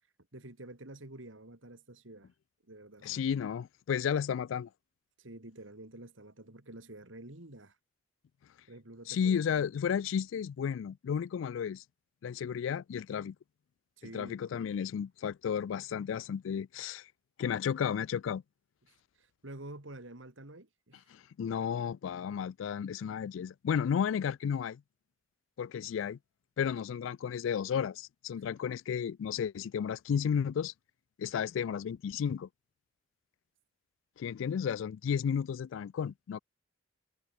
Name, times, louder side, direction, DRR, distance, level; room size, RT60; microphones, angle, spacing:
voice 1, 0.3-2.3 2.7-3.2 5.2-7.8 8.7-9.7 14.0-14.5 19.1-21.0 28.5-28.6, right 1 dB, 80° right, 2.9 m, -49 dB
voice 2, 3.0-4.7 9.1-11.8 12.2-13.4 14.1-17.1 17.4-18.4 21.1-24.8 25.6-26.2 26.6-30.7 31.2-32.5 34.2-36.4, left 7 dB, 75° left, 0.3 m, -33 dB
head